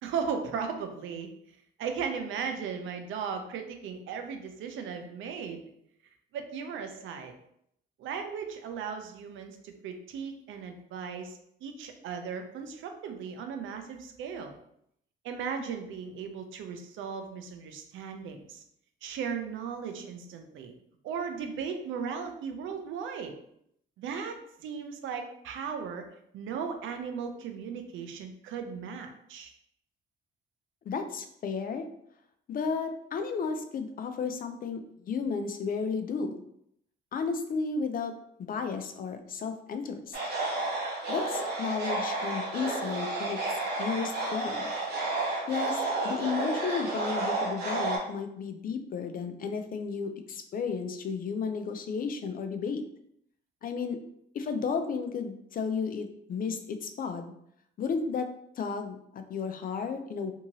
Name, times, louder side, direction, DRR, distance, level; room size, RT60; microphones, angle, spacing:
voice 1, 0.0-1.3 1.8-5.6 6.3-7.3 8.0-14.6 15.2-18.6 19.0-20.7 21.0-23.3 24.0-26.0 26.3-29.5, right 6 dB, 80° right, 6 dB, 0.5 m, -37 dB
voice 2, 30.8-31.9 32.5-36.4 37.1-38.1 38.4-40.2 41.1-44.7 45.5-52.8 53.6-54.0 54.3-57.3 57.8-60.3, left 5 dB, 45° left, 8 dB, 0.4 m, -33 dB
sound 1, 40.1-48.0, right 2 dB, 55° right, 0.9 m, -31 dB
2.8 x 2.7 x 2.7 m, 0.72 s
cardioid pair, 90°, 20 cm